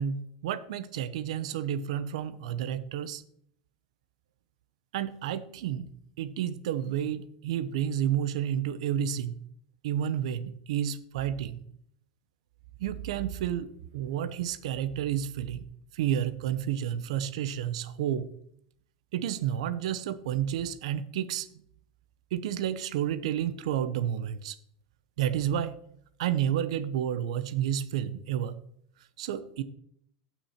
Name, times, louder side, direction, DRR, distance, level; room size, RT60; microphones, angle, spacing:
voice 1, 0.0-3.2 4.9-5.9 6.2-9.4 9.8-11.6 12.8-15.6 15.9-18.3 19.1-21.5 22.3-24.6 25.2-25.7 26.2-28.6 29.2-29.6, right 10 dB, 80° right, 13 dB, 0.8 m, -30 dB
16.5 x 6.1 x 4.4 m, 0.68 s
supercardioid pair, 160°, 3 cm